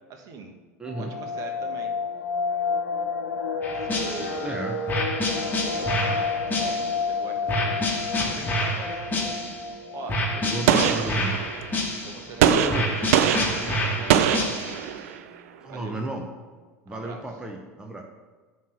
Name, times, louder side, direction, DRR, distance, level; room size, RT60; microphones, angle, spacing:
voice 1, 0.1-0.5 1.0-1.9 3.7-4.6 5.6-9.3 9.9-11.2 12.0-12.9 13.2-14.8 15.7-16.0 16.9-17.2, right 4 dB, 40° right, 3 dB, 1.3 m, -41 dB
voice 2, 0.8-1.1 4.4-4.8 10.4-11.3 12.5-12.9 15.6-16.3 16.9-18.0, right 1 dB, 10° right, 2 dB, 0.8 m, -32 dB
sound 1, 0.9-11.7 11.9-12.0 12.4-12.6 13.0-13.5 14.0-14.1 14.2-14.8 15.1-15.2, left 4 dB, 80° left, 0.8 m, -31 dB
sound 2, 3.6-4.5 4.9-7.1 7.5-9.7 10.1-12.3 12.7-14.9, left 1 dB, 20° left, 1.5 m, -28 dB
Gunshot gunfire, 10.7-11.7 12.4-15.2, right 10 dB, 65° right, 0.5 m, -23 dB
9.1 x 3.2 x 6.1 m, 1.4 s
figure-of-eight pair, 80°, 9 cm